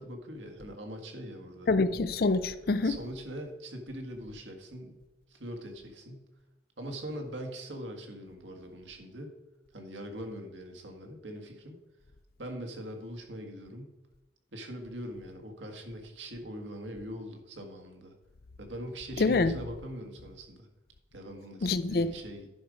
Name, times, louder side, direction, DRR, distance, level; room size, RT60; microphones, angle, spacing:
voice 1, 0.0-1.7 2.8-5.0 5.3-6.2 6.8-9.3 9.7-11.8 12.4-13.9 14.5-18.1 18.6-20.7 21.1-22.5, equal, 80° right, 1.7 m, -42 dB
voice 2, 1.7-2.9 19.2-19.5 21.6-22.1, left 3 dB, 50° left, 0.4 m, -26 dB
11.0 x 5.2 x 5.0 m
head